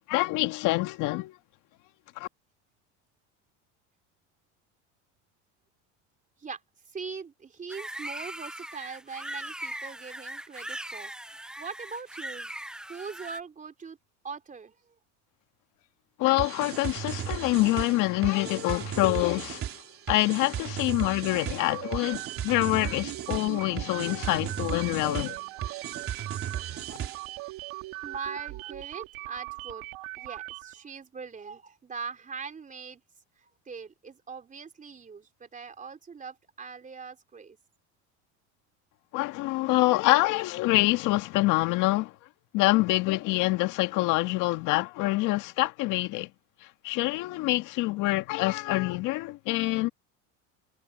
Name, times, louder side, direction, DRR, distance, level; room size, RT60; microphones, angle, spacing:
voice 1, 0.1-1.4 2.2-2.3 16.2-19.7 20.1-25.4 39.1-42.2 42.5-46.3 46.6-49.9, left 20 dB, 60° left, 1.9 m, -26 dB
voice 2, 6.9-12.5 12.9-14.0 14.2-14.9 18.3-18.4 25.1-25.3 26.5-27.2 28.0-29.9 30.2-33.0 33.4-37.6, right 5 dB, 20° right, 3.5 m, -41 dB
sound 1, 7.7-13.4, right 1 dB, ahead, 0.6 m, -39 dB
sound 2, 16.4-27.4, right 10 dB, 40° right, 3.5 m, -36 dB
sound 3, 21.3-30.8, right 22 dB, 65° right, 2.5 m, -40 dB
supercardioid pair, 120°, 34 cm